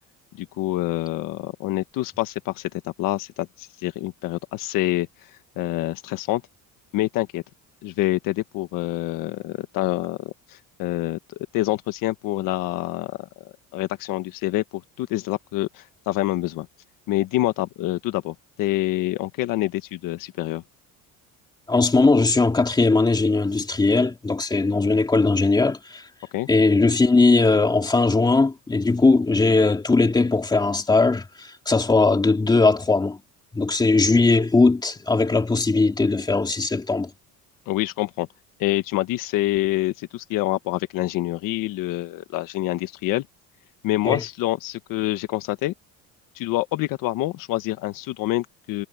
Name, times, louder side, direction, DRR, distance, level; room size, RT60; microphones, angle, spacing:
voice 1, 0.4-5.1 5.6-6.4 6.9-7.4 7.8-11.2 11.5-13.3 13.7-16.7 17.1-20.6 26.3-26.5 37.7-38.3 38.6-43.2 43.8-45.7 46.3-48.9, left 16 dB, 75° left, 1.4 m, -26 dB
voice 2, 21.7-26.0 26.5-33.2 33.5-37.1 44.0-44.2, left 3 dB, 10° left, 2.6 m, -19 dB
cardioid pair, 160°, 33 cm